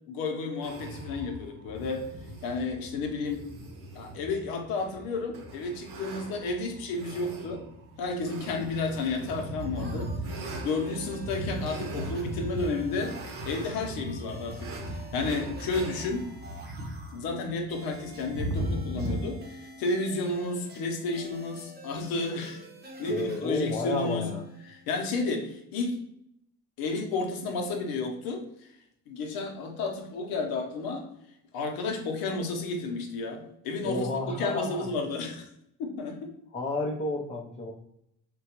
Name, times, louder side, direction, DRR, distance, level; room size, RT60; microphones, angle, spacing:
voice 1, 0.1-2.0 2.4-3.4 3.9-7.6 8.0-10.1 10.6-13.1 13.4-16.2 17.1-22.6 23.0-24.3 24.7-26.0 26.8-28.7 29.1-31.0 31.5-35.5 35.8-36.3, left 3 dB, 90° left, 3 dB, 0.7 m, -32 dB
sound 1, 0.6-19.2, right 1 dB, 65° right, 0.8 m, -38 dB
sound 2, 9.6-25.1, equal, 30° right, 0.8 m, -48 dB
voice 2, 23.1-24.4 33.8-34.9 36.5-37.7, left 2 dB, 20° left, -1 dB, 0.4 m, -31 dB
3.6 x 2.2 x 2.8 m, 0.76 s
cardioid pair, 90°, 35 cm